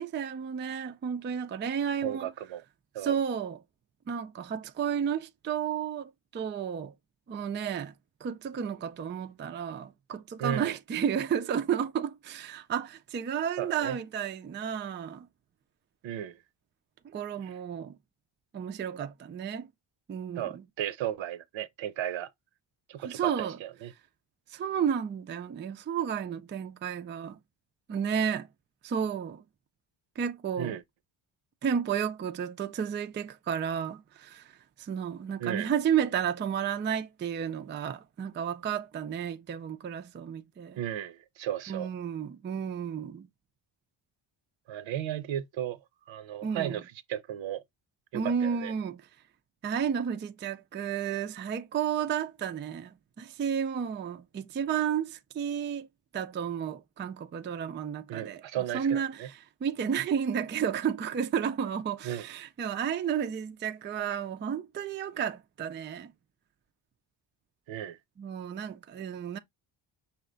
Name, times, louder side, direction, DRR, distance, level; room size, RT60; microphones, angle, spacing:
voice 1, 0.0-2.3 3.0-3.6 4.1-6.9 7.3-7.9 8.2-15.3 17.0-18.0 18.5-19.7 20.1-20.6 23.0-23.6 24.5-27.4 27.9-28.5 28.8-29.4 30.2-30.8 31.6-34.5 34.8-40.8 41.7-43.3 46.4-46.8 48.1-49.0 49.6-55.9 56.1-58.4 58.7-59.3 59.6-66.1 68.2-69.4, right 8 dB, 25° right, 0.3 m, -32 dB
voice 2, 2.0-2.6 2.9-3.2 10.4-10.8 13.6-14.0 16.0-16.4 17.4-17.6 20.4-22.3 22.9-23.9 30.6-30.8 35.4-35.7 40.8-41.9 44.7-47.6 48.1-48.7 58.1-59.3 62.0-62.3 67.7-68.0, right 11 dB, 65° right, 0.7 m, -35 dB
5.6 x 2.2 x 3.8 m
cardioid pair, 115°, 49 cm